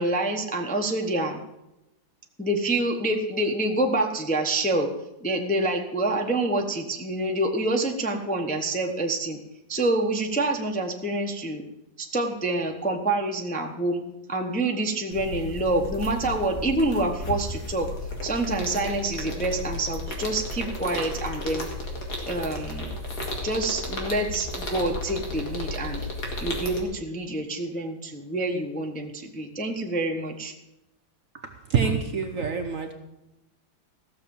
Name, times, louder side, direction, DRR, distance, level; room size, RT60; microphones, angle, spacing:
voice 1, 0.0-1.4 2.4-4.9 5.2-9.4 9.7-11.6 12.0-14.0 14.3-17.9 18.2-21.7 22.3-22.9 23.4-26.0 26.4-30.5, right 2 dB, 5° left, 2 dB, 0.7 m, -27 dB
sound 1, 15.1-26.8, left 2 dB, 55° left, 2.7 m, -33 dB
voice 2, 31.3-32.9, right 6 dB, 55° right, 5 dB, 1.0 m, -26 dB
15.5 x 6.7 x 7.1 m, 0.92 s
omnidirectional pair, 2.1 m